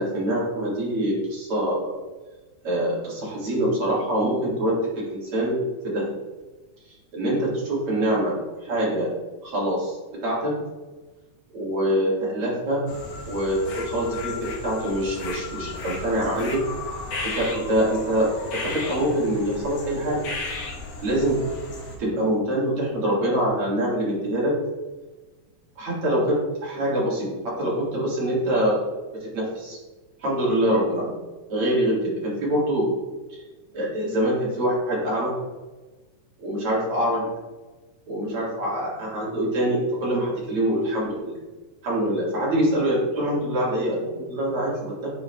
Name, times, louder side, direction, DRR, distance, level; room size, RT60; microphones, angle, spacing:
voice 1, 0.0-2.0 2.6-6.2 7.1-8.3 8.6-9.1 9.4-10.0 10.2-10.5 11.5-12.9 13.3-16.6 17.4-20.2 21.0-21.4 22.0-24.5 25.8-28.8 29.3-29.8 30.2-31.2 31.5-32.9 33.7-35.3 36.4-37.3 38.1-41.4 41.8-45.1, right 1 dB, 50° right, -6 dB, 2.5 m, -24 dB
sound 1, 12.9-22.0, left 3 dB, 60° left, 1.9 m, -35 dB
9.6 x 4.5 x 2.3 m, 1.2 s
omnidirectional pair, 3.6 m